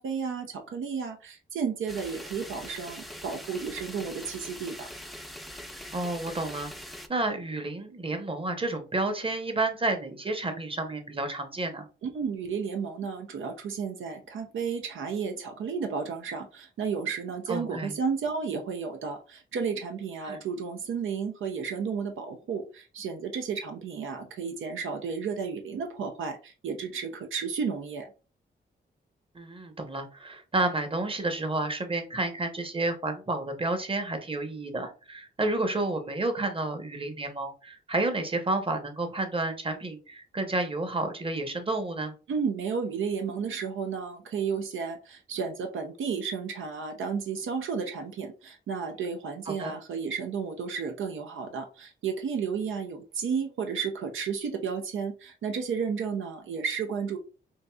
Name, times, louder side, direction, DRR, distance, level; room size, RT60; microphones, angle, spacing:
voice 1, 0.0-4.7 12.0-28.1 42.3-57.2, right 6 dB, 85° right, 5 dB, 0.6 m, -32 dB
sound 1, 1.9-7.1, equal, ahead, 0.5 m, -43 dB
voice 2, 5.9-6.7 7.1-11.9 17.5-18.0 20.3-20.4 29.3-42.1 49.5-49.7, right 2 dB, 25° right, 6 dB, 0.9 m, -30 dB
4.6 x 2.7 x 2.3 m, 0.34 s
cardioid pair, 60°, 20 cm